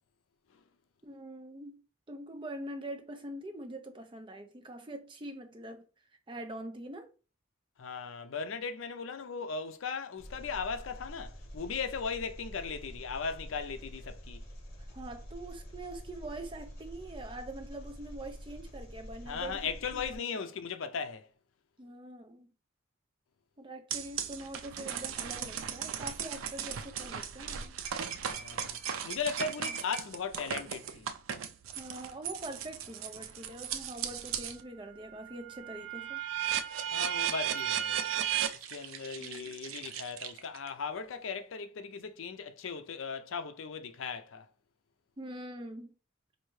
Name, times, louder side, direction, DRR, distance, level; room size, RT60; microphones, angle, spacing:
voice 1, 1.0-1.8 2.1-5.8 6.3-7.1 14.9-20.5 21.8-22.5 23.6-27.8 29.6-29.8 31.8-36.2 39.2-39.8 45.2-45.9, right 1 dB, 25° right, 0.6 m, -44 dB
voice 2, 7.8-14.4 19.3-21.3 28.3-28.8 29.0-31.1 36.9-38.0 38.7-44.5, left 5 dB, 75° left, 0.5 m, -37 dB
Engine, 10.2-20.2, equal, 50° left, 1.3 m, -47 dB
sound 1, 23.9-34.6 35.0-40.7, right 9 dB, 90° right, 0.4 m, -36 dB
4.4 x 2.7 x 3.1 m
head